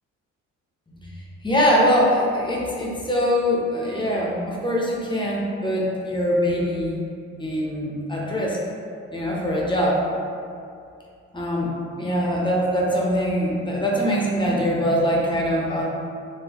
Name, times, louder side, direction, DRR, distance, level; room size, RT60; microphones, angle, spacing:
voice 1, 1.4-7.0 7.4-8.6 9.1-10.0 11.3-15.8, equal, 15° left, -4 dB, 0.7 m, -23 dB
3.7 x 2.1 x 2.9 m, 2.4 s
cardioid pair, 90°, 30 cm